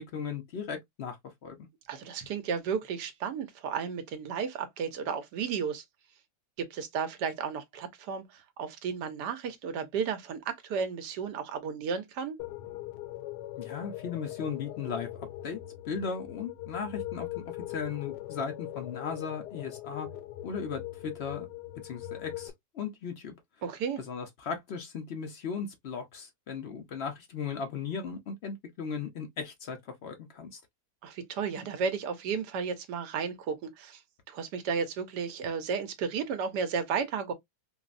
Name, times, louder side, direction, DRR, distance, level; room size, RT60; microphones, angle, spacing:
voice 1, 0.0-1.6 13.6-15.1 15.4-15.6 15.8-20.1 20.4-21.5 21.8-23.3 24.0-30.6, left 6 dB, 65° left, 0.6 m, -37 dB
voice 2, 1.9-5.8 6.6-12.4 23.6-24.0 31.0-34.0 34.3-37.3, right 6 dB, 85° right, 1.2 m, -33 dB
sound 1, 12.4-22.5, left 14 dB, 85° left, 1.3 m, -41 dB
3.7 x 2.0 x 2.4 m
omnidirectional pair, 1.8 m